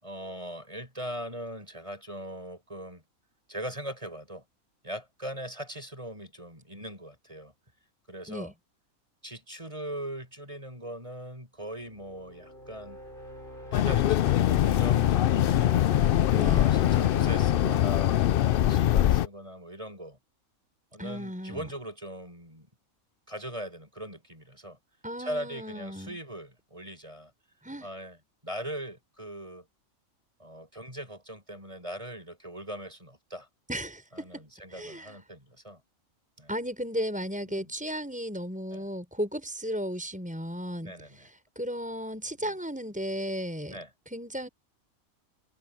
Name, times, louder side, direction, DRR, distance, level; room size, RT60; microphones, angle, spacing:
voice 1, 0.0-3.0 3.5-4.4 4.8-7.5 8.1-8.5 9.2-13.0 13.7-15.8 16.3-20.2 20.9-22.7 23.3-24.8 25.2-27.3 27.8-28.2 28.4-29.6 30.4-33.5 34.2-35.8 36.4-36.5 37.5-37.7 38.7-38.9 40.8-41.3 42.4-42.5 43.7-43.9, right 1 dB, 20° right, 8.1 m, -40 dB
sound 1, 11.7-19.4, equal, 35° left, 7.4 m, -46 dB
sound 2, 13.7-19.3, left 12 dB, 75° left, 0.5 m, -23 dB
voice 2, 16.3-16.8 21.0-21.7 25.0-26.2 27.6-27.9 33.7-34.4 34.7-35.2 36.5-43.8 44.1-44.5, equal, 5° right, 6.0 m, -35 dB
omnidirectional pair, 1.5 m